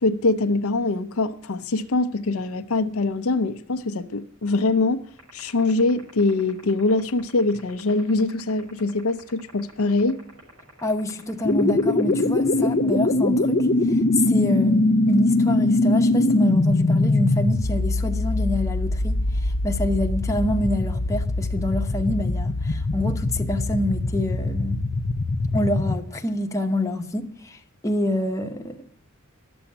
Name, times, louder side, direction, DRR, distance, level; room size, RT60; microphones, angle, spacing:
voice 1, 0.0-5.0 5.3-10.2, left 3 dB, 80° left, 0.7 m, -23 dB
sound 1, 5.2-12.7, right 4 dB, 80° right, 5.7 m, -49 dB
voice 2, 10.8-24.8 25.5-28.8, left 1 dB, 15° left, 1.0 m, -27 dB
sound 2, 11.4-26.0, left 2 dB, 45° left, 0.6 m, -22 dB
12.0 x 7.1 x 9.8 m
head